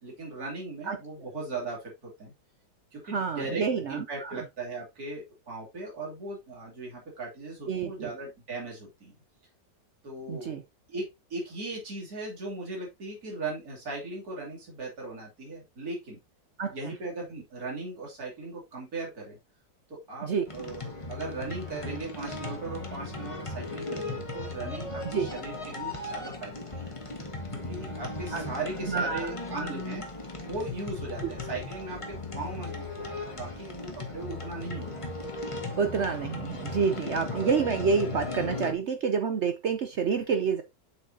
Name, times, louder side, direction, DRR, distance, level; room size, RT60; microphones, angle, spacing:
voice 1, 0.0-2.3 2.9-3.6 3.9-9.2 10.0-10.6 10.9-16.2 16.7-19.4 19.9-26.9 27.5-30.0 30.4-35.1 37.3-37.4, right 3 dB, 50° right, 3.4 m, -38 dB
voice 2, 3.1-4.4 7.7-8.1 10.3-10.6 16.6-16.7 20.2-20.4 25.1-25.3 28.3-28.4 28.9-29.7 35.8-40.6, right 5 dB, 65° right, 0.6 m, -28 dB
sound 1, 20.5-38.7, left 2 dB, 20° left, 1.2 m, -37 dB
7.7 x 6.3 x 2.7 m
omnidirectional pair, 2.0 m